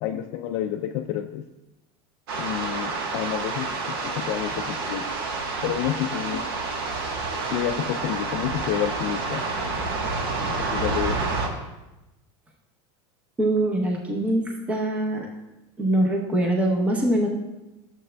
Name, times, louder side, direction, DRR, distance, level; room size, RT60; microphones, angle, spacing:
voice 1, 0.0-1.5 2.4-5.1 5.6-6.5 7.5-9.5 10.5-11.2, left 11 dB, 50° left, 5 dB, 0.3 m, -29 dB
sound 1, 2.3-11.5, right 3 dB, 85° right, 1.2 m, -29 dB
voice 2, 13.4-15.3 15.8-17.3, right 1 dB, 10° right, 0 dB, 0.7 m, -23 dB
12.0 x 7.5 x 2.2 m, 1.0 s
supercardioid pair, 165°, 12 cm